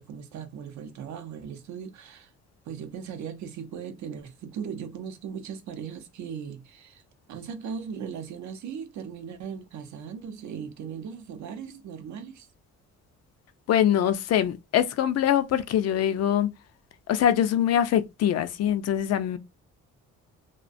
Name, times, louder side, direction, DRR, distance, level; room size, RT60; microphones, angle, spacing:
voice 1, 0.0-2.3 2.7-7.0 7.3-12.5, right 7 dB, 70° right, 0.6 m, -38 dB
voice 2, 13.7-16.5 17.1-19.4, left 10 dB, 60° left, 0.4 m, -23 dB
2.4 x 2.1 x 2.5 m
cardioid pair, 90°, 30 cm